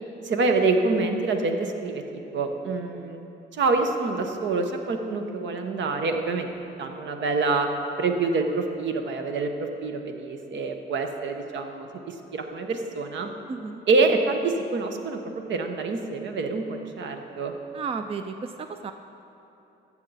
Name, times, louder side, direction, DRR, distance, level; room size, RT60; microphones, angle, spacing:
voice 1, 0.2-3.2 3.5-6.5 6.8-7.7 8.0-13.3 13.9-17.5, right 3 dB, 65° right, 5 dB, 1.0 m, -26 dB
voice 2, 13.5-13.8 17.7-18.9, right 5 dB, 30° right, 8 dB, 0.4 m, -33 dB
13.5 x 7.3 x 4.1 m, 2.9 s
cardioid pair, 90°, 20 cm